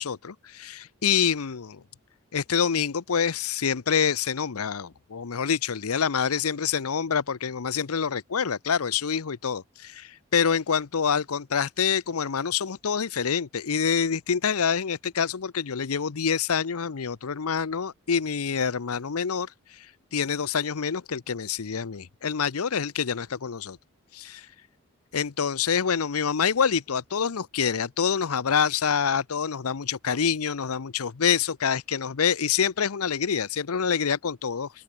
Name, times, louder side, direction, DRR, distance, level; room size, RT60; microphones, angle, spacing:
voice 1, 0.0-1.8 2.3-23.8 24.1-24.5 25.1-34.7, left 7 dB, 85° left, 0.7 m, -26 dB
open air
head